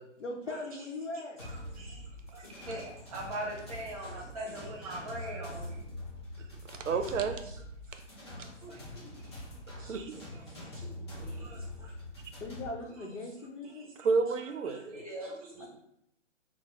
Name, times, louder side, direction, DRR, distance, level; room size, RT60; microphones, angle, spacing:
voice 1, 0.2-1.4 12.4-13.9 15.6-15.7, left 2 dB, 75° left, 2 dB, 0.8 m, -39 dB
voice 2, 1.1-5.8 6.9-7.0 7.4-7.6 7.9-8.0 8.3-9.1 9.8-10.9 11.1-12.0 12.8-13.1 13.6-13.9 14.6-15.7, right 1 dB, 30° right, -2 dB, 0.7 m, -43 dB
sound 1, 1.4-12.7, left 1 dB, 25° left, 0.4 m, -44 dB
voice 3, 6.8-7.4 9.8-10.1 14.0-15.0, right 4 dB, 80° right, 8 dB, 0.5 m, -30 dB
3.4 x 2.0 x 2.9 m, 0.75 s
hypercardioid pair, 155°, 37 cm